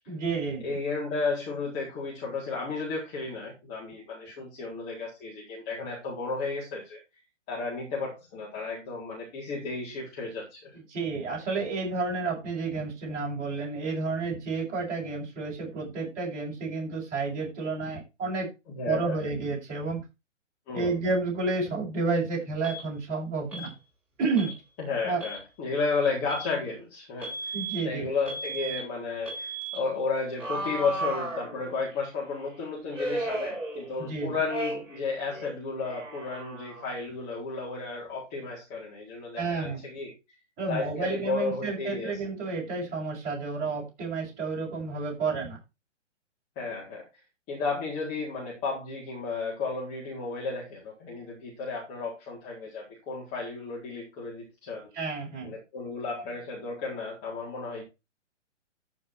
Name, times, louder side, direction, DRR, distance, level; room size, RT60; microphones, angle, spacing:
voice 1, 0.1-0.8 10.7-18.5 18.8-20.0 20.7-23.7 24.2-24.6 25.0-25.2 27.5-28.1 34.0-34.4 39.4-39.8 40.6-45.6 54.9-55.5, right 4 dB, 20° right, -3 dB, 7.0 m, -31 dB
voice 2, 0.6-7.0 7.5-10.8 18.7-19.2 20.7-20.9 24.8-27.5 27.8-40.1 40.7-42.2 46.6-47.0 47.5-54.9 55.4-57.8, left 4 dB, 25° left, -4 dB, 4.2 m, -33 dB
Alarm, 22.6-22.8 23.5-23.7 24.3-24.6 25.1-25.4 26.3-26.5 27.2-27.8 28.3-28.8 29.3-29.8 30.4-31.9 32.9-34.1 34.5-35.0 35.3-37.0, right 2 dB, 5° right, 7.5 m, -35 dB
14.0 x 6.0 x 4.6 m, 0.26 s
figure-of-eight pair, 130°, 37 cm